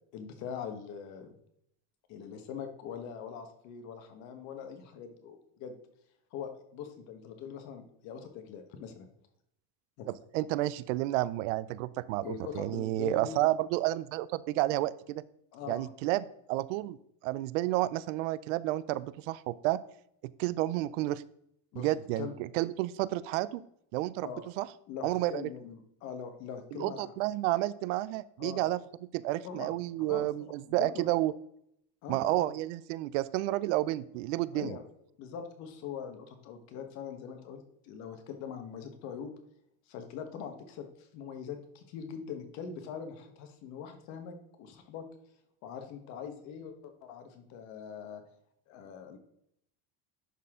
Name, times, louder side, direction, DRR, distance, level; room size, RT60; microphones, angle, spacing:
voice 1, 0.1-1.3 2.1-5.7 6.3-9.1 10.0-10.1 12.2-13.5 15.5-15.9 21.7-21.9 22.2-22.3 24.2-24.5 24.9-27.1 28.4-28.7 29.4-30.3 30.7-31.1 32.0-32.5 34.5-34.8 35.2-39.3 39.9-45.0 45.6-48.2 48.7-49.2, left 7 dB, 50° left, 6 dB, 1.3 m, -42 dB
voice 2, 10.1-15.2 15.7-17.0 17.2-19.8 20.2-21.2 21.7-23.6 23.9-24.3 24.6-24.7 25.0-25.4 26.7-28.8 29.1-31.3 32.1-34.7, right 16 dB, 80° right, 18 dB, 0.5 m, -31 dB
11.0 x 4.3 x 3.7 m, 0.75 s
cardioid pair, 165°, 36 cm